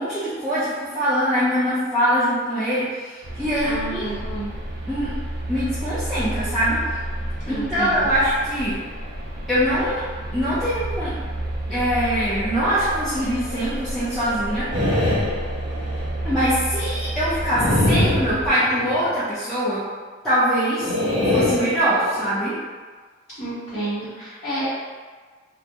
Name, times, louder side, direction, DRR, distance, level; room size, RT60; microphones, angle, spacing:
voice 1, 0.0-4.0 4.9-5.1 5.5-6.8 7.5-8.8 9.5-10.0 10.3-11.1 11.7-14.9 16.2-19.8 20.2-20.9 21.3-22.6, equal, ahead, -15 dB, 0.6 m, -23 dB
sound 1, 3.2-18.5, right 1 dB, 60° right, 0.4 m, -31 dB
voice 2, 3.6-4.5 7.4-8.1 23.4-24.7, right 1 dB, 35° left, -16 dB, 1.0 m, -30 dB
sound 2, 14.7-16.1 17.5-19.0 20.8-22.3, left 1 dB, 30° right, 1.0 m, -23 dB
2.2 x 2.1 x 2.8 m, 1.5 s
head